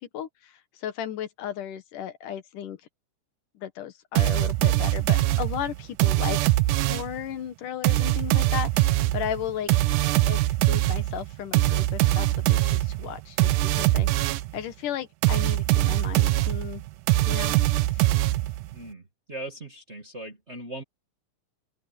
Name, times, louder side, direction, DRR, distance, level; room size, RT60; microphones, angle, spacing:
voice 1, 0.1-2.8 3.6-6.5 6.9-9.7 10.3-16.8 17.3-17.6 17.9-18.0, left 10 dB, 85° left, 3.0 m, -35 dB
sound 1, 4.2-7.2 7.8-14.6 15.2-18.7, right 17 dB, 85° right, 2.2 m, -23 dB
voice 2, 18.7-19.0 19.3-20.8, right 1 dB, 30° right, 1.4 m, -39 dB
open air
omnidirectional pair, 3.6 m